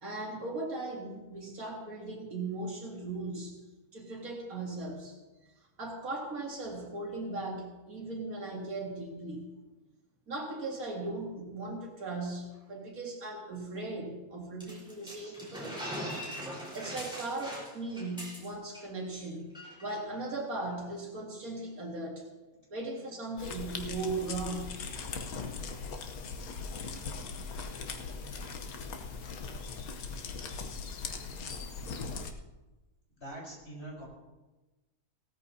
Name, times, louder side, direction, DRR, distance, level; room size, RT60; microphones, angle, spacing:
voice 1, 0.0-3.6 3.9-5.2 5.8-9.5 10.3-15.8 16.7-19.5 19.8-22.3 22.7-24.8, right 2 dB, 65° right, -1 dB, 2.5 m, -38 dB
sound 1, 14.6-18.8 19.1-19.2 19.5-19.9, equal, 5° right, 4.3 m, -41 dB
sound 2, 23.4-32.3, left 4 dB, 70° left, 1.4 m, -39 dB
voice 2, 33.2-34.0, right 1 dB, 40° left, -4 dB, 4.6 m, -44 dB
17.0 x 13.5 x 2.8 m, 1.1 s
omnidirectional pair, 1.6 m